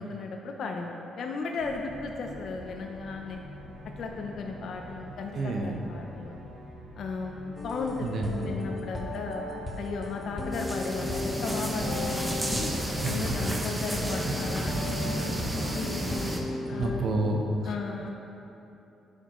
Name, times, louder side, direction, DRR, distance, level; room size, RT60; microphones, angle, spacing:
voice 1, 0.0-3.4 4.0-6.4 7.0-9.5 9.8-12.7 13.0-14.8 15.1-16.1 16.7-17.0 17.6-18.1, left 4 dB, 65° left, 2 dB, 0.5 m, -35 dB
sound 1, 1.6-13.4, right 1 dB, 75° right, 1.1 m, -46 dB
voice 2, 5.3-5.9 8.0-8.5 13.0-13.4 14.2-14.4 16.7-17.7, right 2 dB, 55° right, 2 dB, 0.8 m, -30 dB
sound 2, 7.6-17.0, left 2 dB, 25° left, 1.0 m, -36 dB
sound 3, 10.5-16.4, right 1 dB, 15° right, 0.8 m, -31 dB
11.0 x 4.9 x 3.0 m, 3.0 s
cardioid pair, 90°, 0 cm